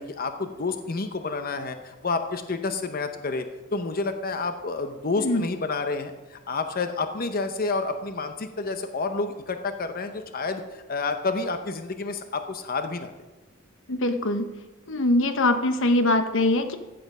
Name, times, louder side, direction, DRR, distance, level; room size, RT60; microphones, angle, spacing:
voice 1, 0.0-3.5 3.7-13.1, left 3 dB, 45° left, 8 dB, 0.8 m, -29 dB
voice 2, 13.9-14.5 14.9-16.8, left 2 dB, 65° left, 8 dB, 1.0 m, -22 dB
15.5 x 7.8 x 5.5 m, 1.1 s
head